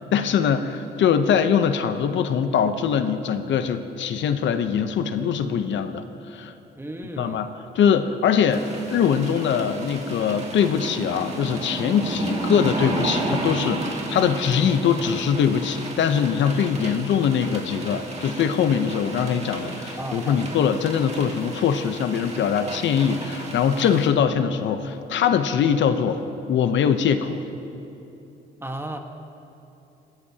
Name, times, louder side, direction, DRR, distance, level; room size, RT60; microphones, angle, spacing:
voice 1, 0.0-6.0 6.3-6.5 7.2-26.2 26.5-27.4, left 7 dB, 70° left, 9 dB, 0.7 m, -22 dB
voice 2, 6.8-7.5 20.0-20.5 22.6-22.8 28.6-29.0, right 1 dB, 10° right, 4 dB, 1.3 m, -34 dB
sound 1, 8.5-24.1, right 2 dB, 35° right, 2.2 m, -32 dB
20.5 x 15.0 x 2.8 m, 2.9 s
cardioid pair, 90°, 20 cm